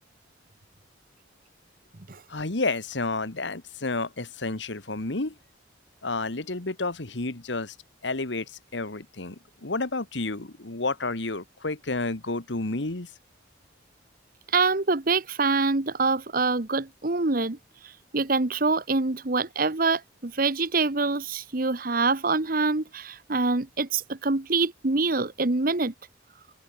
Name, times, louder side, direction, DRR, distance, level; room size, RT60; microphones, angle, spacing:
voice 1, 2.3-5.4 6.0-7.8 8.0-13.1, left 3 dB, 75° left, 1.8 m, -30 dB
voice 2, 14.5-17.6 18.1-25.9, right 3 dB, 50° right, 1.2 m, -25 dB
open air
head